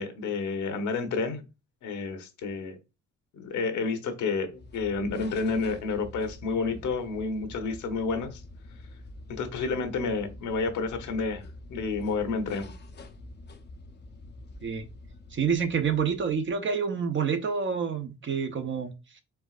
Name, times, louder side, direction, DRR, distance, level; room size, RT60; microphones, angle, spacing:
voice 1, 0.0-1.4 1.8-2.8 3.3-8.4 9.3-11.4 11.7-12.7, left 4 dB, 75° left, 1.0 m, -30 dB
sound 1, 4.5-16.7, left 2 dB, 35° left, 0.6 m, -46 dB
voice 2, 15.3-19.2, right 6 dB, 40° right, 0.8 m, -28 dB
4.5 x 3.9 x 2.4 m
cardioid pair, 90°, 30 cm